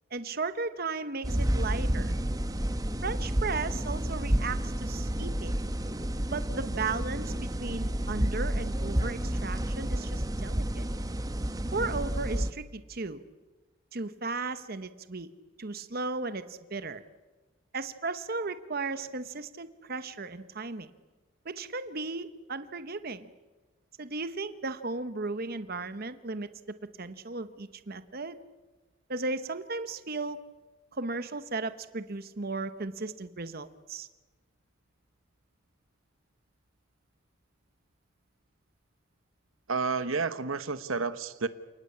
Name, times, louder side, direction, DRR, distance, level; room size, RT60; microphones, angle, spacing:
voice 1, 0.1-2.1 3.0-5.5 6.3-10.9 11.7-13.2 13.9-15.3 15.6-17.0 17.7-20.9 21.4-23.3 24.0-26.5 27.0-28.4 29.1-30.4 30.9-34.1, right 3 dB, 50° right, 11 dB, 1.1 m, -35 dB
sound 1, 1.2-12.5, right 1 dB, 20° right, 1.0 m, -30 dB
voice 2, 39.7-41.5, right 4 dB, 85° right, 12 dB, 1.2 m, -30 dB
28.5 x 19.0 x 8.6 m, 1.2 s
head